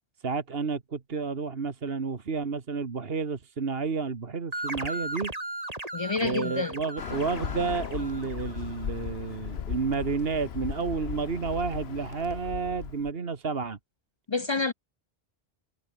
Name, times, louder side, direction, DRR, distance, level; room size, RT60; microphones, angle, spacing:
voice 1, 0.2-5.3 6.2-13.8, right 4 dB, 65° right, 1.8 m, -31 dB
sound 1, 4.5-8.8, right 1 dB, 35° right, 3.9 m, -37 dB
voice 2, 5.9-6.8 14.3-14.7, left 4 dB, 40° left, 0.4 m, -28 dB
Bird, 7.0-13.1, left 8 dB, 75° left, 1.2 m, -37 dB
omnidirectional pair, 1.1 m